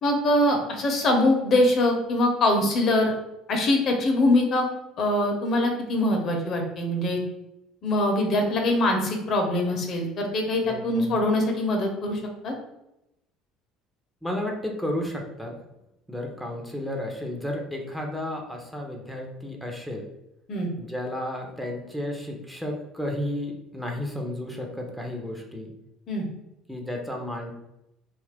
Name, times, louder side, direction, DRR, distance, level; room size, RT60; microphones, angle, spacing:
voice 1, 0.0-3.1 3.5-4.7 5.0-7.2 7.8-12.5 20.5-20.7 26.1-26.2, left 1 dB, 50° left, 2 dB, 0.7 m, -23 dB
voice 2, 10.6-11.2 14.2-15.6 16.1-20.0 20.8-25.7 26.7-27.5, left 1 dB, ahead, 1 dB, 0.7 m, -32 dB
2.6 x 2.4 x 3.4 m, 0.87 s
hypercardioid pair, 75°, 0 cm